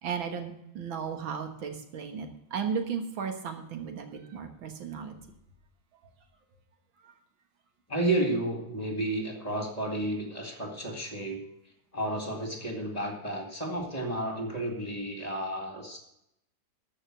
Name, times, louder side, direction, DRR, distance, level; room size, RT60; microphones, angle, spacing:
voice 1, 0.0-5.1 7.0-7.1, right 6 dB, 90° right, 6 dB, 2.2 m, -35 dB
voice 2, 7.9-11.4 11.9-16.0, right 1 dB, 20° left, 2 dB, 2.2 m, -32 dB
14.0 x 5.5 x 7.6 m, 0.81 s
omnidirectional pair, 2.1 m